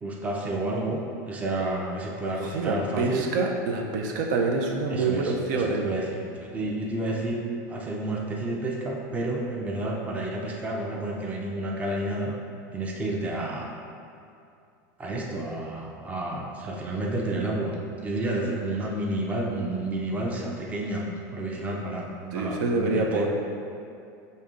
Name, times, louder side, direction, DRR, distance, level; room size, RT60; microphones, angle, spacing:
voice 1, 0.0-1.0 1.3-3.3 4.9-7.4 7.7-12.3 12.7-13.7 15.0-23.3, right 1 dB, 15° right, -2 dB, 0.5 m, -30 dB
voice 2, 2.4-5.8 22.3-23.3, right 3 dB, 70° right, 1 dB, 0.6 m, -26 dB
5.3 x 2.7 x 3.6 m, 2.5 s
supercardioid pair, 140°, 10 cm